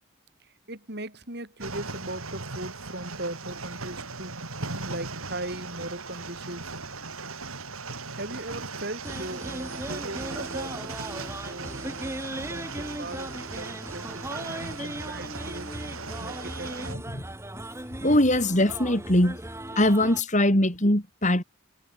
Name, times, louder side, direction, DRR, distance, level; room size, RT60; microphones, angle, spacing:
voice 1, 0.4-4.4 4.8-6.7 8.1-12.2 12.5-15.7 16.2-17.1 19.7-19.8, right 1 dB, 50° right, 8.0 m, -39 dB
sound 1, 1.6-16.9, right 4 dB, 75° right, 5.0 m, -38 dB
sound 2, 9.0-20.2, right 1 dB, 10° right, 2.8 m, -37 dB
voice 2, 18.0-19.4 19.8-21.4, left 1 dB, 35° left, 4.1 m, -21 dB
head